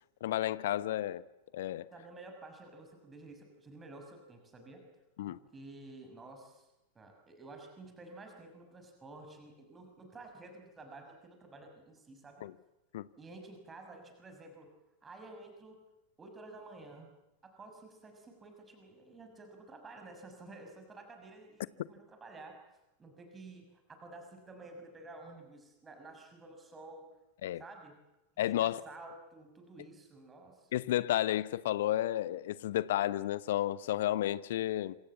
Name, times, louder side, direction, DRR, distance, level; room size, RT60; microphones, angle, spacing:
voice 1, 0.2-1.2 1.5-1.9 5.2-5.4 12.4-12.5 12.9-13.1 27.4-27.6 28.4-28.8 30.7-35.0, left 13 dB, 55° left, 0.9 m, -32 dB
voice 2, 1.9-4.8 5.3-6.7 6.9-12.5 13.2-14.7 15.0-15.8 16.2-17.1 17.4-22.6 23.0-27.1 27.6-27.9 28.4-30.7, right 2 dB, 15° right, 6.2 m, -51 dB
27.0 x 26.5 x 7.4 m
figure-of-eight pair, 90°, 0 cm